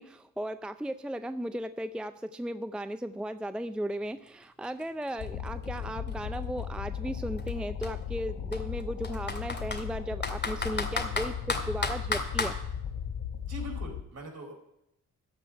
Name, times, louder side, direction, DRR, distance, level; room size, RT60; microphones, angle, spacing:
voice 1, 0.0-12.6, equal, 5° right, 11 dB, 0.5 m, -36 dB
Computer keyboard, 4.3-4.4 4.6-6.6 7.4-7.5 7.8-7.9 8.5-9.8 10.2-12.5, left 3 dB, 35° left, 2.2 m, -32 dB
sound 1, 5.2-14.0, left 8 dB, 85° left, 1.3 m, -36 dB
voice 2, 13.4-14.5, right 1 dB, 55° right, 0 dB, 4.5 m, -42 dB
14.0 x 5.0 x 8.7 m, 0.78 s
cardioid pair, 80°, 30 cm